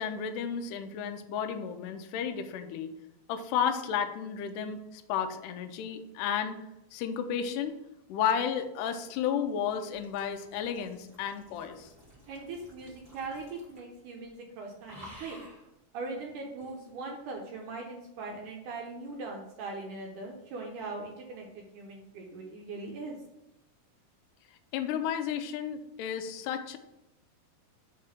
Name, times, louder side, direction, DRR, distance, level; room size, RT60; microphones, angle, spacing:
voice 1, 0.0-2.9 3.3-6.6 6.9-7.7 8.1-11.9 24.7-26.8, left 8 dB, 80° left, 6 dB, 1.9 m, -32 dB
sound 1, 8.3-14.0 14.2-14.5 14.8-15.7 16.6-16.7, equal, 20° right, 1.3 m, -53 dB
voice 2, 12.3-15.4 15.9-23.2, right 3 dB, 75° right, 0 dB, 2.0 m, -40 dB
5.5 x 3.7 x 5.8 m, 0.88 s
omnidirectional pair, 4.2 m